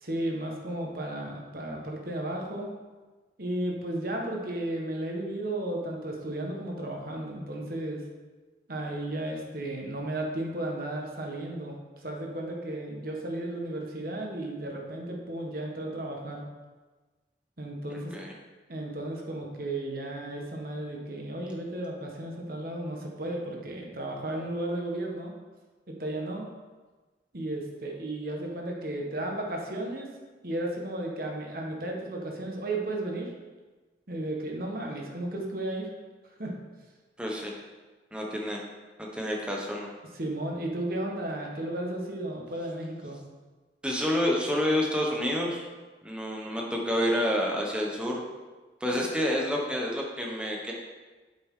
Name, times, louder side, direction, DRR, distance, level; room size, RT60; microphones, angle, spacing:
voice 1, 0.0-2.7 3.4-8.0 8.7-16.4 17.6-18.1 18.7-25.3 25.9-26.5 27.3-30.1 30.4-33.3 34.1-35.9 36.4-36.5 39.3-39.4 40.1-43.2, right 1 dB, 55° right, 0 dB, 1.5 m, -34 dB
voice 2, 37.2-37.5 38.1-38.6 39.0-39.9 43.8-45.7 46.0-48.2 48.8-50.7, equal, 5° right, -1 dB, 1.2 m, -28 dB
8.0 x 7.9 x 3.8 m, 1.3 s
head